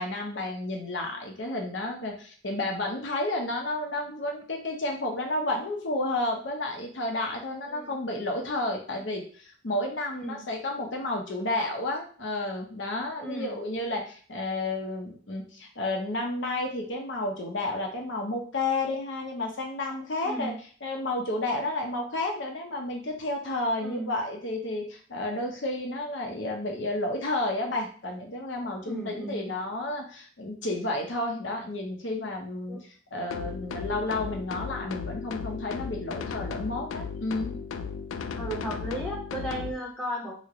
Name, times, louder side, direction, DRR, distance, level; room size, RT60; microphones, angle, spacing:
voice 1, 0.0-20.5 20.8-32.8 33.1-37.5, left 2 dB, 70° left, 1 dB, 0.8 m, -31 dB
voice 2, 10.1-10.4 13.2-13.5 20.2-20.6 23.8-24.1 28.8-29.5 32.7-32.8 38.4-40.4, right 1 dB, 5° left, -4 dB, 0.8 m, -35 dB
sound 1, 33.3-39.7, left 5 dB, 90° left, 0.3 m, -35 dB
3.1 x 2.2 x 3.8 m, 0.43 s
head